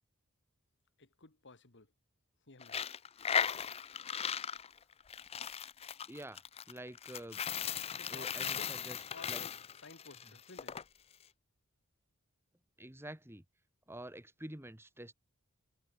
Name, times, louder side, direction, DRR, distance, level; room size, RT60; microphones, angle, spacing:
voice 1, 1.0-1.9 2.5-2.8 7.9-9.5 9.8-10.8, left 3 dB, 55° left, 2.0 m, -54 dB
Coin (dropping), 2.6-10.8, left 7 dB, 30° left, 0.5 m, -37 dB
voice 2, 6.1-6.4 6.7-7.4 8.1-9.0 9.3-9.4 12.8-13.4 13.9-15.1, right 1 dB, 10° right, 1.9 m, -47 dB
head